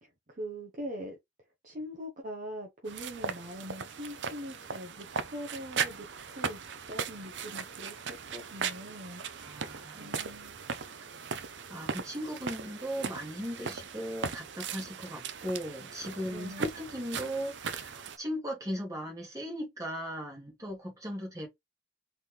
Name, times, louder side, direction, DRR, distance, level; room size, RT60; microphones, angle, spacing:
voice 1, 0.0-1.2 1.6-6.6 6.9-9.2 10.0-10.6 16.3-16.7, equal, 45° right, 1.0 m, -42 dB
sound 1, 2.9-18.2, right 6 dB, 70° right, 0.6 m, -38 dB
voice 2, 9.4-10.1 11.7-21.5, equal, 20° right, 2.1 m, -38 dB
4.1 x 3.6 x 3.2 m
head